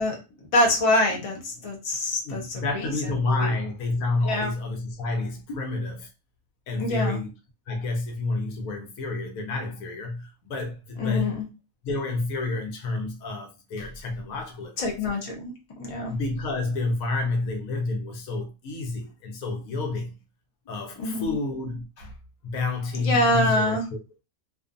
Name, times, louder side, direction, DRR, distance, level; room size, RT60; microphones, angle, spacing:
voice 1, 0.0-3.6 4.2-4.5 5.5-5.6 6.8-7.2 11.0-11.4 14.8-15.5 15.8-16.1 21.0-21.3 23.0-23.8, left 1 dB, 35° left, 0.6 m, -25 dB
voice 2, 2.3-6.1 6.7-7.3 7.7-11.3 11.8-14.9 16.1-20.2 20.7-22.1 22.4-24.0, left 2 dB, 80° left, 1.1 m, -29 dB
2.5 x 2.4 x 2.5 m
omnidirectional pair, 1.4 m